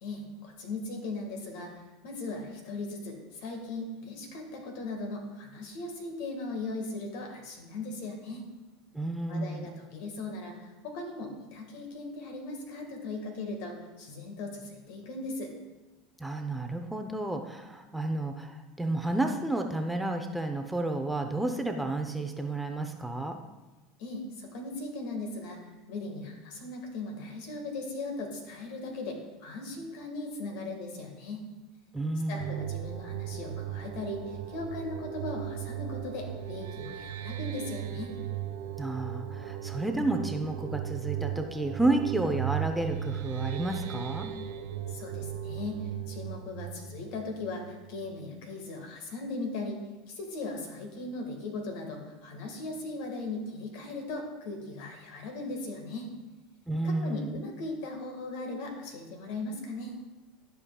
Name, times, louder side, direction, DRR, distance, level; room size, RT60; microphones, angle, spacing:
voice 1, 0.0-8.5 9.3-15.5 24.0-25.6 25.9-31.4 32.3-38.1 44.9-49.8 50.1-56.1 56.8-60.0, left 2 dB, 70° left, 3 dB, 1.7 m, -38 dB
voice 2, 8.9-9.7 16.2-23.4 31.9-32.6 38.8-44.3 56.7-57.4, right 2 dB, 5° right, 5 dB, 0.6 m, -31 dB
sound 1, 32.4-47.8, right 11 dB, 80° right, 0.6 m, -37 dB
12.5 x 5.2 x 2.3 m, 1.1 s
hypercardioid pair, 100°, 0 cm